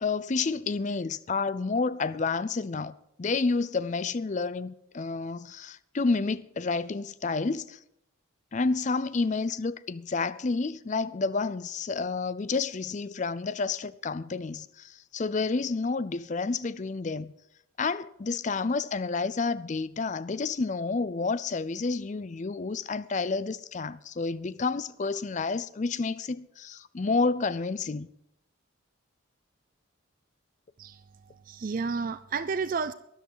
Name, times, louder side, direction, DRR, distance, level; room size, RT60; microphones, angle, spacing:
voice 1, 0.0-7.8 8.5-17.3 17.8-28.1, left 4 dB, 35° left, 0.4 m, -30 dB
voice 2, 30.8-32.9, right 5 dB, 40° right, 0.4 m, -32 dB
13.0 x 11.0 x 5.6 m
head